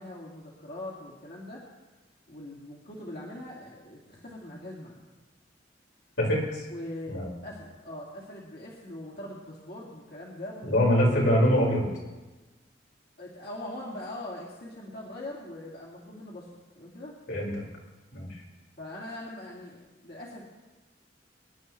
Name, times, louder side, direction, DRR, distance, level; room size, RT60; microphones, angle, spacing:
voice 1, 0.0-1.6 2.3-5.0 6.7-7.2 7.4-11.4 13.2-17.2 18.8-20.4, left 1 dB, 55° left, -5 dB, 2.3 m, -41 dB
voice 2, 6.2-6.7 7.1-7.3 10.7-11.9 17.3-17.6 18.1-18.4, equal, 85° left, -4 dB, 5.3 m, -24 dB
25.5 x 11.5 x 3.2 m, 1.2 s
head